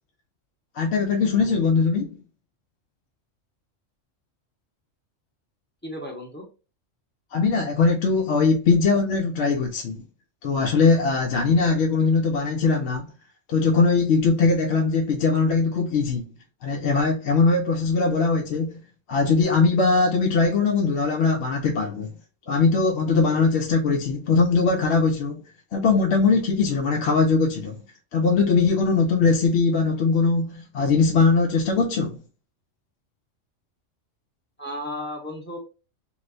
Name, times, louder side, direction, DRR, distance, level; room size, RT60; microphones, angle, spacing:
voice 1, 0.7-2.1 7.3-10.0 10.4-13.1 13.5-16.3 16.6-18.8 19.1-22.1 22.5-25.4 25.7-27.8 28.1-32.2, left 4 dB, 65° left, 0.7 m, -21 dB
voice 2, 5.8-6.4 34.6-35.6, left 1 dB, 10° left, 0.7 m, -34 dB
3.2 x 2.9 x 2.5 m
omnidirectional pair, 1.3 m